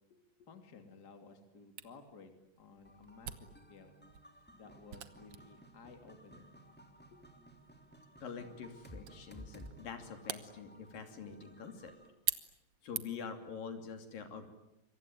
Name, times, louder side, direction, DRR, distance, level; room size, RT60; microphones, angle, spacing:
voice 1, 0.5-2.3 2.6-3.9 4.5-6.5, left 4 dB, 30° left, 7 dB, 3.1 m, -56 dB
Camera, 1.8-13.4, right 10 dB, 60° right, 1.7 m, -46 dB
sound 1, 2.8-12.1, equal, 5° left, 2.6 m, -56 dB
voice 2, 8.2-11.9 12.8-14.5, left 6 dB, 70° left, 7 dB, 4.5 m, -45 dB
26.5 x 24.0 x 9.2 m, 0.85 s
omnidirectional pair, 4.1 m